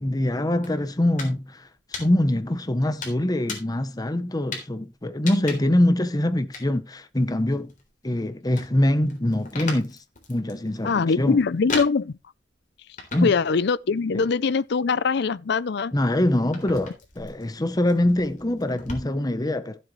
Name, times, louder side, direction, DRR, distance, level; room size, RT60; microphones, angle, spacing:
voice 1, 0.0-7.7 8.0-10.0 10.3-11.4 13.1-13.3 14.1-14.3 15.9-19.8, left 1 dB, 20° left, 0.8 m, -24 dB
sound 1, 0.6-1.4 1.7-2.5 3.0-3.8 4.5-4.8 5.3-5.8 6.5-6.7 7.2-8.2 8.5-12.4 13.0-13.5 13.8-14.5 15.1-18.9, left 4 dB, 45° left, 3.5 m, -37 dB
voice 2, 10.8-12.1 13.2-15.9, left 5 dB, 65° left, 0.5 m, -22 dB
15.0 x 7.7 x 3.1 m
head